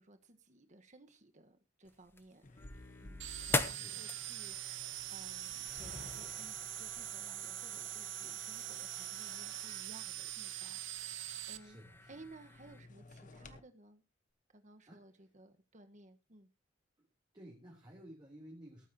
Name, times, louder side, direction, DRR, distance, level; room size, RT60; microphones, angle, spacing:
voice 1, 0.0-2.4 3.0-6.5 6.8-11.8 12.1-14.0 14.5-16.5, right 2 dB, 40° right, 8 dB, 1.4 m, -58 dB
sound 1, 1.8-12.8, left 2 dB, 10° left, 0.8 m, -45 dB
sound 2, 2.4-13.6, left 3 dB, 45° left, 1.2 m, -53 dB
sound 3, 3.2-11.6, right 14 dB, 70° right, 0.9 m, -43 dB
voice 2, 3.6-4.1 11.6-12.1 14.9-15.0 17.0-17.1 17.3-18.9, right 1 dB, 25° right, -3 dB, 3.4 m, -54 dB
18.0 x 9.4 x 2.9 m, 0.26 s
head